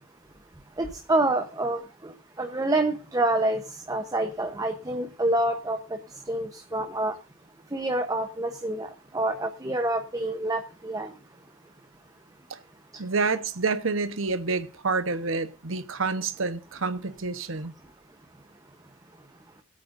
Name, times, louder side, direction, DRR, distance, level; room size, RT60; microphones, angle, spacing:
voice 1, 0.8-2.1 2.4-3.6 3.9-5.8 6.3-7.2 7.7-11.1, right 2 dB, 20° right, 0.9 m, -27 dB
voice 2, 13.0-17.7, right 4 dB, 75° right, 1.1 m, -28 dB
21.5 x 8.5 x 2.6 m
head